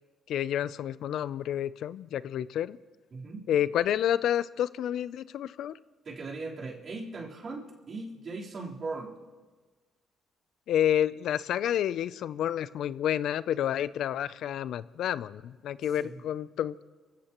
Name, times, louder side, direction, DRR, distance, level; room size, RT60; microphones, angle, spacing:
voice 1, 0.3-2.8 3.5-5.8 10.7-16.8, left 10 dB, 75° left, 17 dB, 0.4 m, -29 dB
voice 2, 3.1-3.4 6.0-9.1 16.0-16.2, right 3 dB, 50° right, -4 dB, 3.7 m, -39 dB
27.0 x 16.0 x 3.0 m, 1.3 s
cardioid pair, 90°, 0 cm